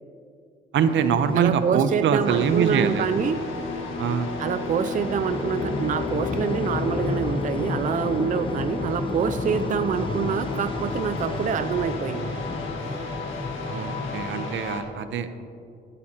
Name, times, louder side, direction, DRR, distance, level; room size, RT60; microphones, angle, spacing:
sound 1, 0.7-14.5, left 3 dB, 25° left, 0.7 m, -33 dB
voice 1, 0.7-3.3 4.0-4.3 8.6-8.7 13.7-15.4, right 7 dB, 70° right, 10 dB, 0.8 m, -24 dB
voice 2, 1.4-3.4 4.4-12.3, right 7 dB, 40° right, 10 dB, 0.4 m, -26 dB
sound 2, 2.2-14.8, left 3 dB, 75° left, 1.7 m, -33 dB
15.5 x 11.0 x 2.9 m, 2.5 s
cardioid pair, 90°, 20 cm